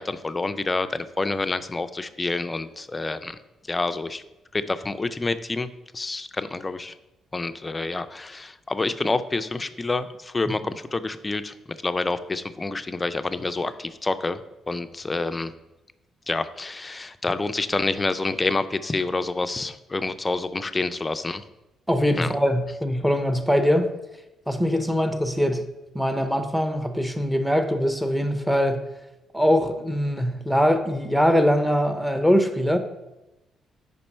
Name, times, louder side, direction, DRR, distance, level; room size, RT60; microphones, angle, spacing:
voice 1, 0.0-3.4 3.7-4.2 4.5-5.7 5.9-6.9 7.3-11.5 11.8-14.4 14.7-15.5 16.3-21.4 22.2-22.3, left 3 dB, 20° left, 11 dB, 0.4 m, -28 dB
voice 2, 21.9-23.9 24.5-25.6 25.9-28.8 29.3-32.8, equal, ahead, 8 dB, 0.7 m, -22 dB
5.2 x 4.2 x 5.4 m, 0.96 s
cardioid pair, 90°, 0 cm